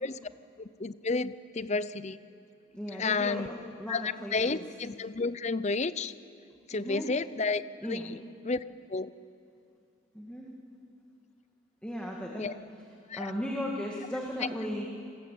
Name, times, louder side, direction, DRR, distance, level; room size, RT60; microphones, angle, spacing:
voice 1, 0.6-2.2 2.9-3.5 3.9-6.1 6.7-7.6 7.9-8.2 8.4-8.6 8.9-9.1 12.4-12.5 13.1-13.3, left 3 dB, 30° left, 15 dB, 0.6 m, -31 dB
voice 2, 2.7-4.6 6.7-7.1 7.8-8.1 10.1-10.5 11.8-12.5 13.1-14.9, equal, 5° left, -2 dB, 2.1 m, -36 dB
29.5 x 20.5 x 8.6 m, 2.5 s
head